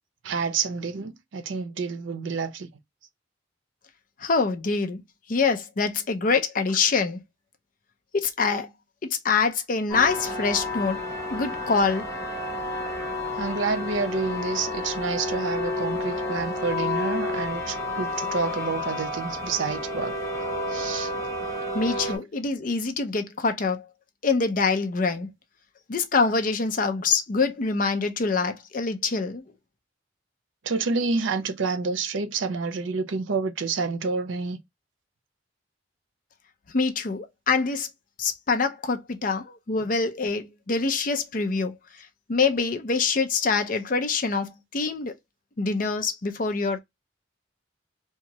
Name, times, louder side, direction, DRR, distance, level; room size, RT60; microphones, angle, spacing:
voice 1, 0.2-2.7 13.4-20.1 20.7-21.1 30.6-34.6, right 4 dB, 85° right, 0.6 m, -28 dB
voice 2, 4.2-5.0 5.3-7.2 8.1-8.7 9.0-11.0 11.3-12.1 21.7-23.8 24.2-25.3 25.9-29.4 36.7-37.9 38.2-41.7 42.3-45.2 45.6-46.8, left 4 dB, 45° left, 0.5 m, -25 dB
sound 1, 9.9-22.2, left 2 dB, 15° left, 1.3 m, -30 dB
2.7 x 2.3 x 2.9 m
head